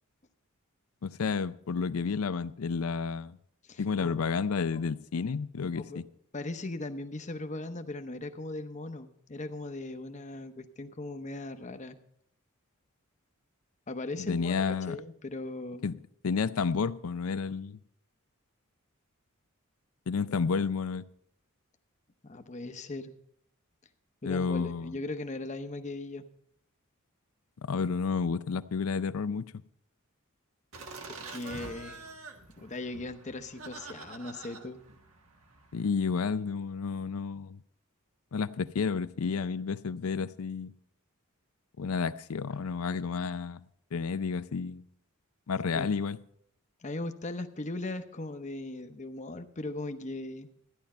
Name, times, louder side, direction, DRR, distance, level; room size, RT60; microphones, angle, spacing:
voice 1, 1.0-3.4 3.8-6.1 14.2-15.0 15.8-15.9 16.2-17.8 20.1-21.1 24.2-24.9 27.6-29.5 35.7-37.6 38.3-40.7 41.8-43.6 43.9-44.8 45.5-46.2, left 5 dB, 80° left, 15 dB, 0.5 m, -31 dB
voice 2, 3.6-4.2 4.7-4.8 5.7-6.0 6.3-12.0 13.9-15.9 20.2-20.5 22.2-23.1 24.2-26.3 31.3-32.0 32.5-34.8 45.7-45.9 46.8-50.5, left 2 dB, 35° left, 8 dB, 0.8 m, -38 dB
Laughter, 30.7-35.9, right 3 dB, 75° right, 1.4 m, -46 dB
14.0 x 10.5 x 4.3 m, 0.69 s
head